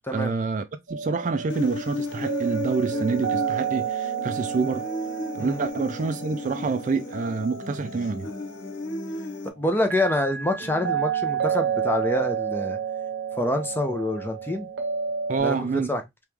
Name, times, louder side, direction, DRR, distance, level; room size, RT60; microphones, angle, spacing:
voice 1, 0.1-4.8 5.3-8.3 15.3-15.9, right 4 dB, 40° right, 0.3 m, -27 dB
sound 1, 0.9-15.4, right 7 dB, 65° right, 0.7 m, -31 dB
Human voice, 1.5-9.5, left 3 dB, 90° left, 0.8 m, -35 dB
voice 2, 9.6-12.8 13.4-14.7 15.4-16.0, left 1 dB, 10° left, 0.6 m, -26 dB
3.1 x 3.0 x 3.4 m
head